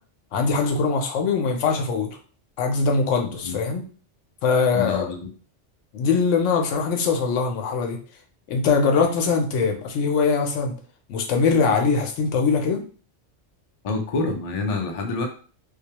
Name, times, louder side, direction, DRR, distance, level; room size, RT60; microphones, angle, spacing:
voice 1, 0.3-2.2 2.6-3.9 4.4-5.1 5.9-8.0 8.5-10.8 11.1-12.8, left 5 dB, 80° left, 3 dB, 0.9 m, -22 dB
voice 2, 4.7-5.2 13.8-15.3, left 3 dB, 55° left, 2 dB, 0.4 m, -27 dB
2.3 x 2.1 x 2.8 m, 0.39 s
omnidirectional pair, 1.2 m